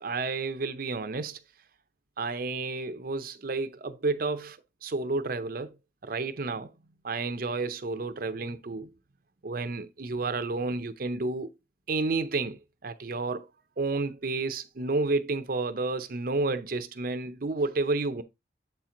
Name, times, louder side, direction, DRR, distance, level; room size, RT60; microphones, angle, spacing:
voice 1, 0.0-1.4 2.2-5.7 6.0-6.7 7.0-8.9 9.4-11.5 11.9-13.5 13.8-18.2, right 3 dB, 50° right, 0.6 m, -31 dB
7.8 x 4.4 x 3.8 m
head